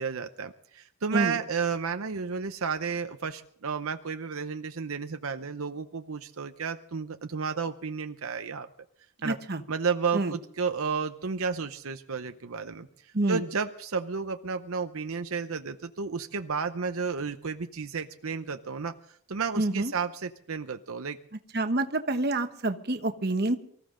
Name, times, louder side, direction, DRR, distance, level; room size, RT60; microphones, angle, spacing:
voice 1, 0.0-8.7 9.2-9.4 9.7-21.2, right 5 dB, 75° right, 7 dB, 0.7 m, -32 dB
voice 2, 9.2-9.6 10.1-10.3 13.1-13.4 19.6-19.9 21.5-23.6, right 2 dB, 45° right, 7 dB, 1.2 m, -27 dB
24.5 x 14.5 x 3.8 m, 0.63 s
head